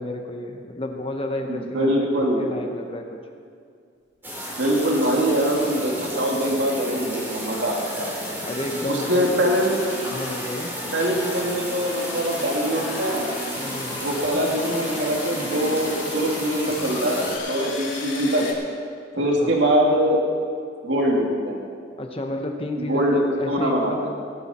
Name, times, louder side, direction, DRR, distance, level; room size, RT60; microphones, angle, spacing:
voice 1, 0.0-3.2 8.5-9.3 10.1-10.7 13.6-14.0 19.1-19.5 22.0-24.0, left 1 dB, 30° left, 3 dB, 0.9 m, -31 dB
voice 2, 1.5-2.5 4.6-8.1 8.9-9.8 10.9-13.3 14.0-18.5 19.1-20.2 20.8-21.6 22.8-24.1, equal, 75° right, -1 dB, 2.3 m, -23 dB
sound 1, 4.2-17.4, equal, 10° right, 2.9 m, -32 dB
sound 2, 9.4-18.5, left 4 dB, 80° left, 2.8 m, -37 dB
19.0 x 12.0 x 4.3 m, 2.3 s
head